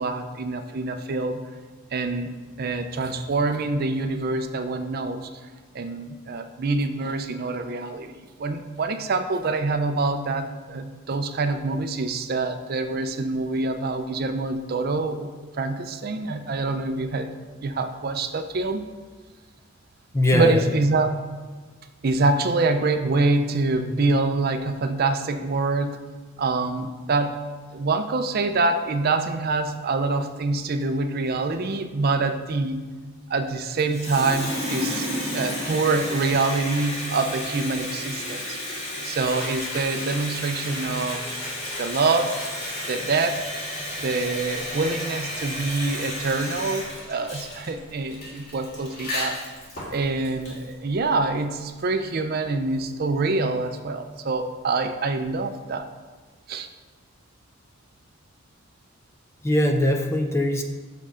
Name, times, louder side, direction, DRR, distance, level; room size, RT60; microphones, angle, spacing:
voice 1, 0.0-1.5 1.9-5.3 5.7-15.3 15.6-17.3 17.6-18.8 20.3-21.1 22.0-26.0 26.4-27.4 27.7-32.8 33.3-35.1 35.3-41.3 41.8-42.4 42.9-43.4 44.0-49.6 49.9-55.9 56.5-56.7, right 3 dB, 45° right, 8 dB, 0.4 m, -25 dB
voice 2, 20.1-20.6 59.4-60.6, left 1 dB, 15° left, 5 dB, 0.4 m, -21 dB
Water tap faucet, 33.8-50.7, left 1 dB, 35° left, 2.2 m, -33 dB
sound 1, 39.2-43.2 44.0-51.4, left 1 dB, 50° left, 1.6 m, -38 dB
6.6 x 5.4 x 5.0 m, 1.4 s
head